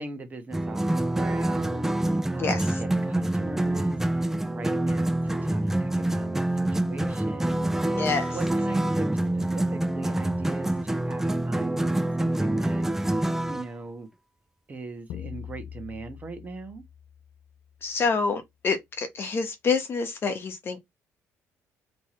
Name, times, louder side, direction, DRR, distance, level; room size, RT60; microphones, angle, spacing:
voice 1, 0.0-14.1 14.7-16.8, right 3 dB, 25° right, 1.3 m, -40 dB
acoustic flamenco imitation, 0.5-13.7, right 1 dB, 5° right, 0.4 m, -26 dB
voice 2, 2.4-2.8 8.0-8.3 17.8-20.8, left 5 dB, 40° left, 1.2 m, -27 dB
sound 1, 15.1-17.8, left 9 dB, 80° left, 0.7 m, -42 dB
3.4 x 3.2 x 4.3 m
cardioid pair, 125°, 6 cm